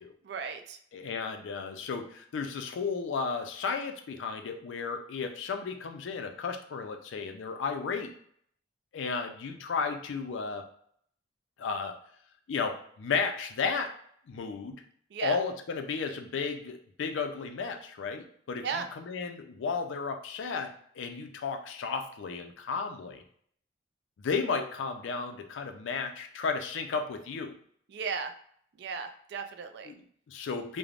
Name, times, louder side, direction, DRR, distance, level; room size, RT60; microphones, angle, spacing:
voice 1, 0.2-0.8 15.1-15.4 18.6-18.9 27.9-28.3 28.8-29.9, right 5 dB, 60° right, 8 dB, 0.3 m, -35 dB
voice 2, 0.9-8.1 8.9-10.6 11.6-12.0 12.5-13.9 14.3-14.8 15.2-23.2 24.2-27.5 29.8-30.8, left 5 dB, 85° left, 5 dB, 0.4 m, -34 dB
3.2 x 2.1 x 2.4 m, 0.64 s
head